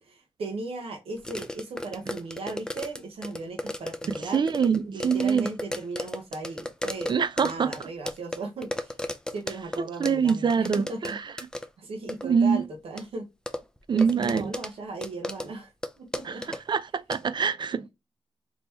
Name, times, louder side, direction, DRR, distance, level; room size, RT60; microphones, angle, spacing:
voice 1, 0.0-4.4 4.9-7.1 7.4-8.9 9.3-11.2 11.8-13.3 13.9-15.7 16.0-16.4 17.8-17.9, right 3 dB, 80° right, 1.0 m, -37 dB
sound 1, 1.2-9.8 10.0-11.1 11.4-11.7 12.1-12.2 13.0-13.1 13.5-14.7 15.0-15.5 15.8-16.6 17.1-17.2, left 1 dB, 5° left, 0.5 m, -33 dB
voice 2, 4.3-5.5 7.1-7.7 10.0-11.3 12.2-12.6 13.9-14.4 16.2-17.9, right 6 dB, 50° right, 0.5 m, -24 dB
3.5 x 2.9 x 2.9 m
cardioid pair, 75°, 10 cm